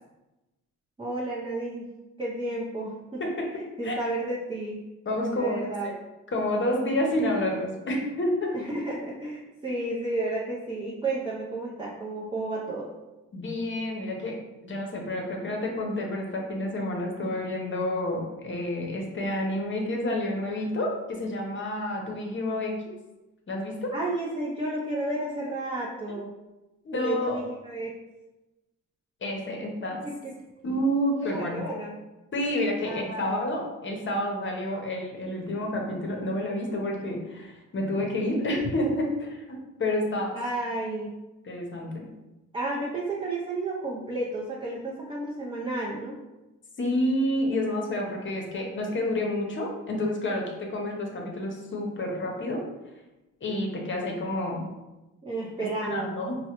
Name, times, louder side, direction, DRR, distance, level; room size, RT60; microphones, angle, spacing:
voice 1, 1.0-1.9 2.2-3.2 3.8-4.8 5.3-5.9 8.5-12.9 23.9-26.3 26.9-27.9 30.0-30.3 31.2-31.9 32.9-33.4 40.3-41.1 42.5-46.2 55.2-56.1, right 2 dB, 15° right, -5 dB, 0.5 m, -32 dB
voice 2, 3.2-3.5 3.8-4.0 5.1-5.9 6.3-8.6 13.3-14.4 14.6-22.8 23.5-23.9 26.8-27.4 29.2-30.0 30.6-31.6 32.3-40.3 40.7-40.8 41.4-42.1 46.8-52.6 53.4-54.7 55.8-56.4, left 1 dB, 40° left, 1 dB, 0.8 m, -29 dB
4.5 x 2.2 x 2.9 m, 1.1 s
cardioid pair, 115°, 31 cm